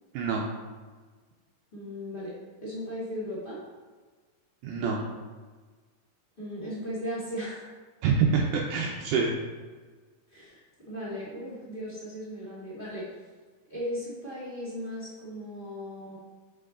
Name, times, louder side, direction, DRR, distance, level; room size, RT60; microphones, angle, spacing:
voice 1, 0.1-0.5 4.6-5.0 8.0-9.3, right 5 dB, 85° right, 0 dB, 1.8 m, -26 dB
voice 2, 1.7-2.3 2.6-3.6 6.4-7.7 10.3-10.6 10.9-13.0 13.7-16.2, equal, 50° left, -7 dB, 0.6 m, -36 dB
6.7 x 6.1 x 3.8 m, 1.4 s
omnidirectional pair, 4.4 m